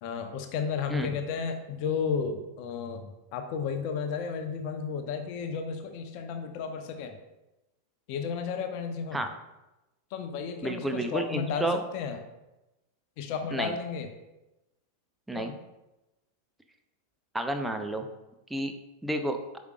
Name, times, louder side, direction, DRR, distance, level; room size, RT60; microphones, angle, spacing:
voice 1, 0.0-7.2 8.1-9.2 10.1-12.2 13.2-14.1 15.3-15.5, left 6 dB, 45° left, 6 dB, 0.8 m, -33 dB
voice 2, 10.6-11.8 13.5-13.7 15.3-15.5 17.3-18.1 18.5-18.7 19.0-19.4, right 1 dB, 5° right, 5 dB, 0.6 m, -30 dB
8.1 x 5.1 x 2.4 m, 0.98 s
figure-of-eight pair, 90°, 0 cm